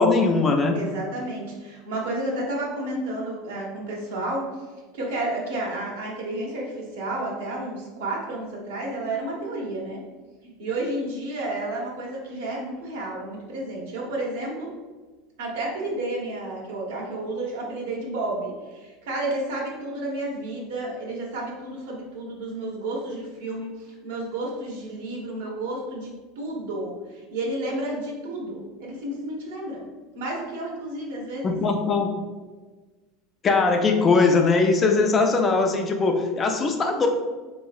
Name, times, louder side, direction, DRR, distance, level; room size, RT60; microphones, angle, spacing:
voice 1, 0.0-0.8 31.4-32.1 33.4-37.1, left 3 dB, 25° left, 3 dB, 0.4 m, -20 dB
voice 2, 0.7-4.6 4.9-10.0 10.4-14.7 15.4-29.8 30.1-31.6, right 2 dB, 85° right, -2 dB, 1.1 m, -31 dB
3.6 x 3.0 x 2.4 m, 1.3 s
supercardioid pair, 130°, 0 cm